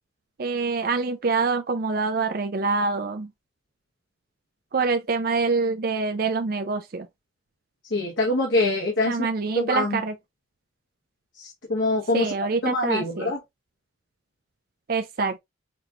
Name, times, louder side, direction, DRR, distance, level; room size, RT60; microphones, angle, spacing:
voice 1, 0.4-3.3 4.7-7.1 9.1-10.2 12.1-13.3 14.9-15.4, right 4 dB, 50° right, 0.5 m, -25 dB
voice 2, 7.9-9.2 9.5-10.0 11.4-12.3 12.6-13.4, left 2 dB, 75° left, 1.2 m, -24 dB
5.9 x 2.9 x 2.4 m
head